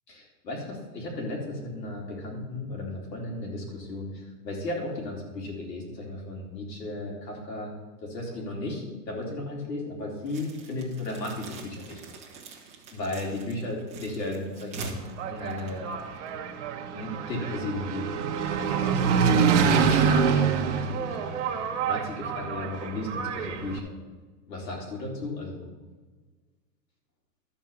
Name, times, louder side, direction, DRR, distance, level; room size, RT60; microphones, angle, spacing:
voice 1, 0.1-7.7 8.0-12.0 12.9-15.0 15.3-15.9 16.9-18.1 18.5-21.6 21.9-23.9 24.5-25.7, left 2 dB, 85° left, -1 dB, 4.0 m, -35 dB
sound 1, 10.2-16.4, right 4 dB, 15° right, 1.1 m, -44 dB
Engine, 14.9-23.8, right 6 dB, 45° right, 1.1 m, -26 dB
12.0 x 4.9 x 7.3 m, 1.3 s
supercardioid pair, 165°, 49 cm